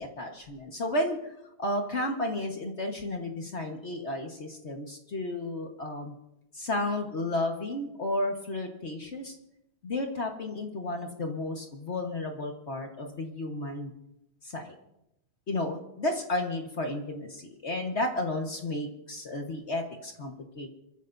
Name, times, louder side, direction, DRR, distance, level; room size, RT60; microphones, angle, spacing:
voice 1, 0.0-1.3 1.6-6.1 6.5-9.3 9.8-13.9 15.5-20.7, left 1 dB, 50° left, 3 dB, 0.7 m, -32 dB
28.0 x 14.5 x 2.6 m, 0.85 s
omnidirectional pair, 3.3 m